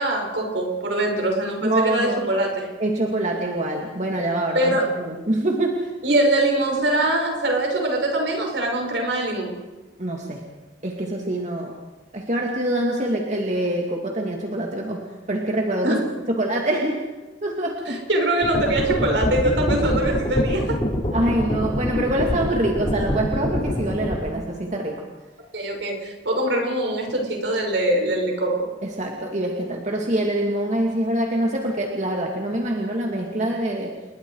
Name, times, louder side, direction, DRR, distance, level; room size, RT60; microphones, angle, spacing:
voice 1, 0.0-2.7 4.5-4.8 6.0-9.5 15.8-16.0 17.9-20.8 25.5-28.6, right 1 dB, 75° right, 1 dB, 6.0 m, -23 dB
voice 2, 1.6-2.3 2.8-5.9 10.0-10.4 10.8-11.7 12.1-16.0 16.3-17.2 17.4-18.0 21.1-25.0 28.8-33.9, right 1 dB, 40° right, 0 dB, 2.4 m, -25 dB
sound 1, 18.4-24.2, equal, 30° left, 5.1 m, -25 dB
29.0 x 21.5 x 4.9 m, 1.2 s
head